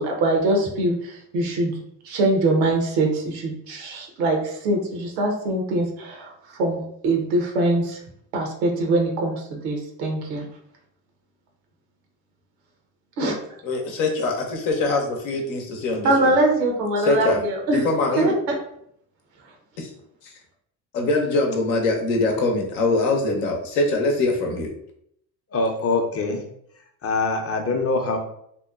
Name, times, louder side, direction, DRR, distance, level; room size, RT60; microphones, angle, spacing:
voice 1, 0.0-1.7 2.0-6.3 6.6-8.0 8.3-10.5 13.2-13.4 16.0-17.8 18.2-18.3, right 2 dB, 85° right, 1 dB, 0.8 m, -23 dB
voice 2, 13.6-16.3 17.0-17.4 17.7-18.4 19.8-19.9 20.2-20.3 20.9-24.7, left 2 dB, 75° left, 1 dB, 0.8 m, -23 dB
voice 3, 25.5-26.4 27.0-28.2, left 3 dB, 30° left, 3 dB, 0.6 m, -23 dB
2.8 x 2.1 x 2.3 m, 0.70 s
hypercardioid pair, 60°, 49 cm